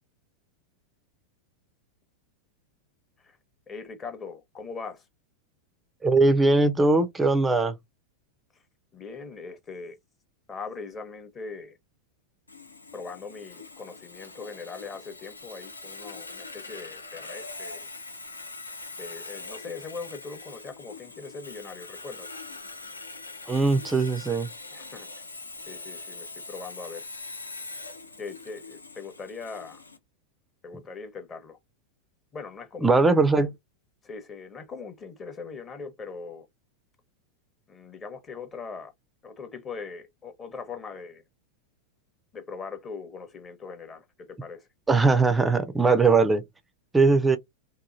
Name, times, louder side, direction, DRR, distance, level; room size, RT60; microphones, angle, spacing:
voice 1, 3.7-5.1 8.9-10.0 10.5-11.8 12.9-17.9 19.0-22.3 24.7-25.1 25.6-27.0 28.2-29.8 30.6-31.6 32.3-32.9 34.0-36.5 37.7-38.9 39.2-41.2 42.3-44.7, left 4 dB, 20° left, 0.7 m, -40 dB
voice 2, 6.0-7.8 23.5-24.5 32.8-33.5 44.9-46.4 46.9-47.4, right 3 dB, 10° right, 0.4 m, -20 dB
Sawing, 12.5-30.0, left 3 dB, 80° left, 0.5 m, -42 dB
2.9 x 2.3 x 2.4 m
figure-of-eight pair, 90°, 0 cm